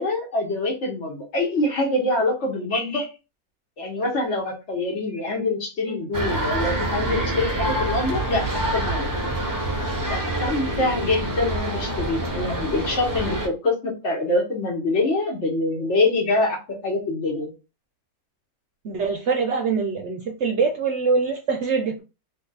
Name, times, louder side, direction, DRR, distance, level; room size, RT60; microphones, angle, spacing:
voice 1, 0.0-3.1 3.8-9.2 10.1-16.6 16.8-17.5, left 2 dB, 55° left, 0 dB, 1.1 m, -25 dB
sound 1, 6.1-13.5, right 1 dB, 25° right, 0.4 m, -26 dB
voice 2, 18.8-22.0, right 5 dB, 60° right, 2 dB, 0.8 m, -24 dB
2.7 x 2.6 x 3.8 m, 0.30 s
omnidirectional pair, 1.6 m